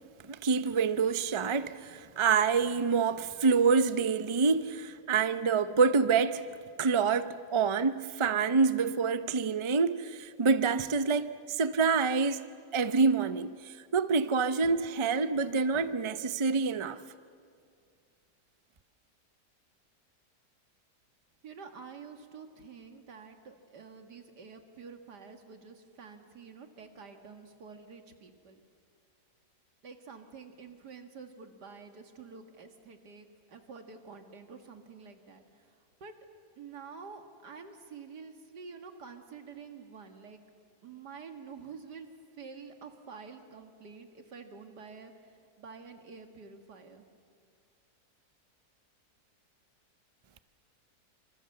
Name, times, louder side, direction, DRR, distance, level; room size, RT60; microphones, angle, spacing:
voice 1, 0.3-6.5 6.8-12.4 12.7-17.0, right 5 dB, 50° right, 0.3 m, -27 dB
voice 2, 21.4-28.6 29.8-36.1 36.6-40.4 40.8-42.1 42.3-47.1, right 5 dB, 85° right, 2.5 m, -48 dB
26.0 x 26.0 x 7.9 m
omnidirectional pair, 1.7 m